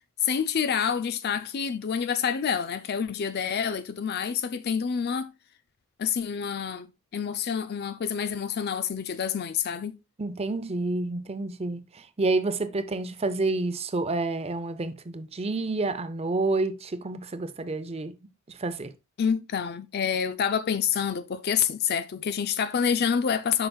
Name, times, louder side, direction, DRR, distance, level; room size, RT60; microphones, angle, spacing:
voice 1, 0.2-5.3 6.0-10.0 19.2-23.7, left 7 dB, 45° left, 0.4 m, -27 dB
voice 2, 10.2-18.1 18.5-18.9, right 2 dB, 30° right, 0.6 m, -29 dB
7.9 x 5.6 x 2.3 m
head